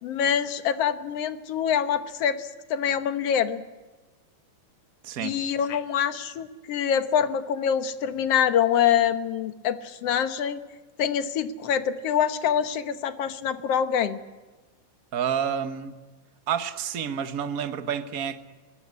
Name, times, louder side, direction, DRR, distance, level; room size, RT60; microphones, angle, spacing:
voice 1, 0.0-3.6 5.2-10.6 11.0-14.2, left 8 dB, 60° left, 11 dB, 2.0 m, -25 dB
voice 2, 15.1-15.9 16.5-18.4, right 8 dB, 75° right, 10 dB, 0.8 m, -29 dB
21.0 x 20.5 x 9.6 m, 1.2 s
omnidirectional pair, 3.4 m